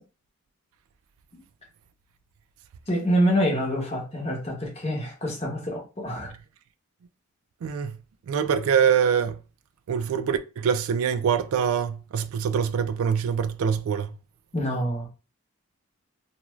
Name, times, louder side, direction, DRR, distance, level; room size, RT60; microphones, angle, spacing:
voice 1, 2.9-6.3 14.5-15.1, equal, 30° left, 0.9 m, -26 dB
voice 2, 7.6-8.0 8.3-9.4 9.9-14.1, right 7 dB, 70° right, 0.3 m, -24 dB
2.4 x 2.3 x 3.0 m
head